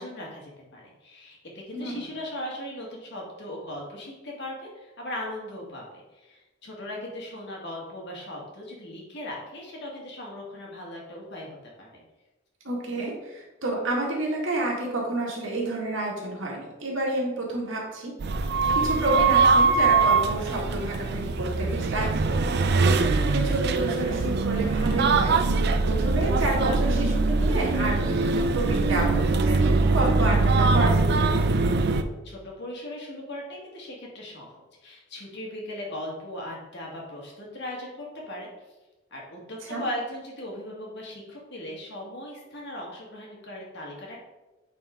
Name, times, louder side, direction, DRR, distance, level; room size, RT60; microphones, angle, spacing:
voice 1, 0.0-5.8 6.1-12.0 31.7-31.8 32.2-34.5 34.8-38.5 39.1-44.2, left 1 dB, 60° left, -2 dB, 2.0 m, -38 dB
voice 2, 1.7-2.0 12.6-18.1 18.7-25.6 25.9-31.4 39.7-39.8, right 2 dB, 90° right, -2 dB, 2.1 m, -30 dB
sound 1, 18.2-32.0, right 3 dB, 55° right, 0.5 m, -22 dB
8.8 x 4.2 x 3.7 m, 1.1 s
head